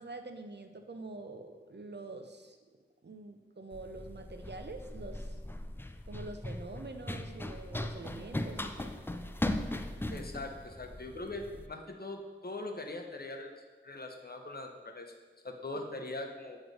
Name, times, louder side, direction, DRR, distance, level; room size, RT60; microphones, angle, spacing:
voice 1, 0.0-2.6 3.0-5.3 6.1-8.9, right 2 dB, 60° right, 6 dB, 0.6 m, -45 dB
Run, 3.7-11.7, left 1 dB, 10° left, 0.3 m, -39 dB
voice 2, 10.1-13.5 13.8-15.1 15.4-16.6, left 2 dB, 55° left, 3 dB, 0.7 m, -41 dB
7.7 x 3.1 x 5.1 m, 1.4 s
wide cardioid pair, 45°, 19 cm